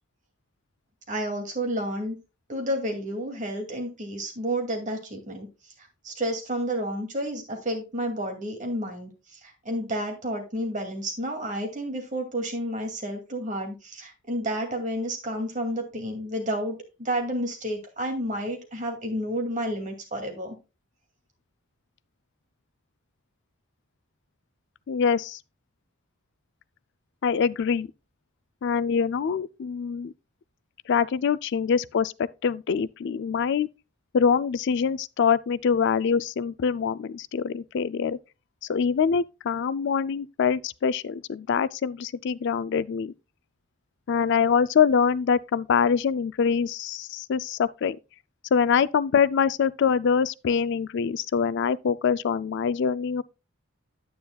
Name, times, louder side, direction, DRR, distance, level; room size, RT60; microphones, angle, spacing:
voice 1, 1.1-2.2 2.5-5.5 6.0-9.1 9.6-20.6, right 1 dB, 40° right, 2.4 m, -30 dB
voice 2, 24.9-25.4 27.2-27.9 28.6-30.1 30.9-33.7 34.1-38.2 38.7-43.1 44.1-48.0 48.5-53.2, left 6 dB, 60° left, 0.4 m, -24 dB
9.4 x 9.3 x 2.3 m
head